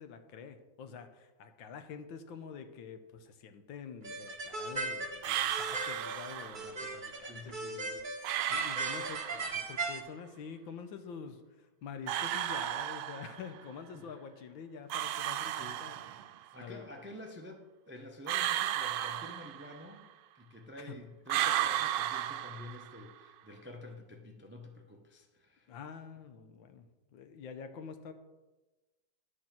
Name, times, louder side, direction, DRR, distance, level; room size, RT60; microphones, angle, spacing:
voice 1, 0.0-11.4 11.8-16.0 16.6-16.9 20.8-20.9 25.7-26.9 27.1-28.1, left 6 dB, 70° left, 8 dB, 1.6 m, -47 dB
sound 1, 4.0-10.0, right 2 dB, 40° right, 0.7 m, -38 dB
sound 2, 5.2-6.7 8.2-9.7 12.1-13.6 14.9-16.4 18.3-20.0 21.3-23.1, right 12 dB, 80° right, 1.4 m, -34 dB
voice 2, 7.3-7.8 13.9-14.2 15.6-15.9 16.5-20.1 20.3-25.7, left 1 dB, 15° right, 3 dB, 0.3 m, -49 dB
11.0 x 6.6 x 6.0 m, 1.1 s
omnidirectional pair, 2.3 m